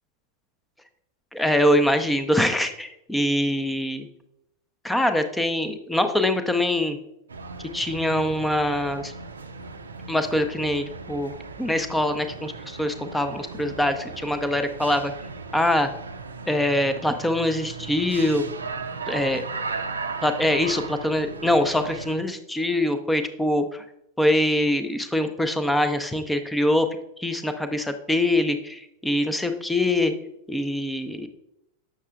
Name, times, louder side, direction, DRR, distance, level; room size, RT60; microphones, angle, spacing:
voice 1, 1.3-4.1 4.8-7.0 7.7-9.1 10.1-11.3 11.6-15.1 15.5-15.9 16.5-18.4 19.1-19.4 20.2-23.8 24.2-26.9 27.2-30.1 30.5-31.3, left 1 dB, 5° left, 8 dB, 0.6 m, -23 dB
sound 1, 7.3-22.2, right 4 dB, 75° right, 0.5 m, -37 dB
7.1 x 6.4 x 2.4 m, 0.82 s
figure-of-eight pair, 90°, 0 cm